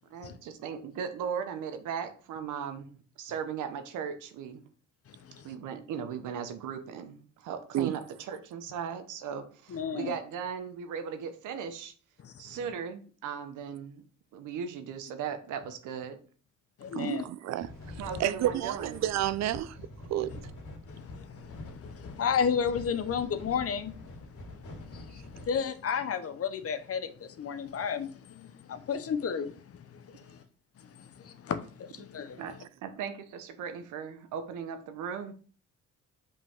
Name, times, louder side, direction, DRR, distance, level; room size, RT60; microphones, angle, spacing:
voice 1, 0.1-4.7 5.3-11.9 12.4-14.0 14.3-16.2 18.0-18.9 32.4-32.5 32.8-35.3, right 7 dB, 90° right, 1.0 m, -37 dB
voice 2, 5.1-5.5 9.7-10.2 12.2-12.6 16.8-17.2 20.9-30.4 30.8-32.4, left 7 dB, 50° left, 0.9 m, -33 dB
voice 3, 16.9-20.5, right 12 dB, 65° right, 0.4 m, -31 dB
sound 1, 17.6-25.6, left 2 dB, 80° left, 2.9 m, -45 dB
5.3 x 5.1 x 3.7 m
cardioid pair, 90°, 30 cm